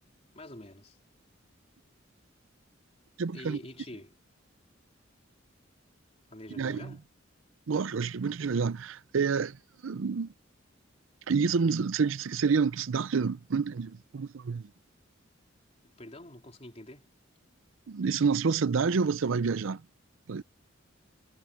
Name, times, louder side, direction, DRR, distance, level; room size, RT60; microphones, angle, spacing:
voice 1, 0.3-1.0 3.3-4.1 6.3-7.0 16.0-17.1, left 1 dB, 30° left, 4.1 m, -46 dB
voice 2, 3.2-3.6 6.5-7.0 7.7-10.3 11.3-14.7 17.9-19.9 20.3-20.4, right 5 dB, 80° right, 0.5 m, -28 dB
head